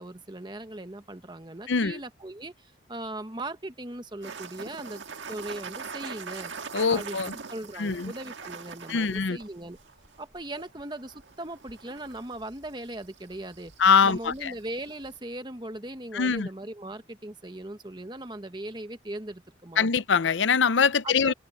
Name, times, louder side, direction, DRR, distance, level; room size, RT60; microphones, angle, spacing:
voice 1, 0.0-5.0 5.3-6.5 6.9-9.8 10.2-13.7 14.0-19.9 21.0-21.3, right 1 dB, 25° right, 1.2 m, -39 dB
voice 2, 1.7-2.0 6.7-7.3 7.8-8.1 8.9-9.4 13.8-14.5 16.1-16.5 19.8-21.3, left 5 dB, 85° left, 0.7 m, -23 dB
sound 1, 4.2-15.2, right 5 dB, 85° right, 1.7 m, -43 dB
head